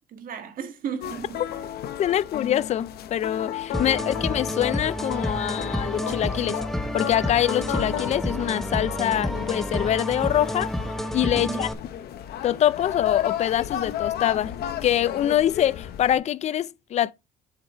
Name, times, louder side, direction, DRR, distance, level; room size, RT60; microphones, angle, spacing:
voice 1, 0.1-1.5 2.1-2.2 4.0-4.1 11.3-11.7, right 7 dB, 55° right, 1.6 m, -35 dB
sound 1, 1.0-16.2, left 10 dB, 70° left, 1.0 m, -33 dB
voice 2, 2.0-6.6 6.9-10.7 11.1-11.7 12.4-14.5 14.8-17.1, left 11 dB, 40° left, 0.4 m, -24 dB
sound 2, 3.7-11.7, left 1 dB, ahead, 0.9 m, -30 dB
7.4 x 4.8 x 4.4 m
cardioid pair, 110°, 17 cm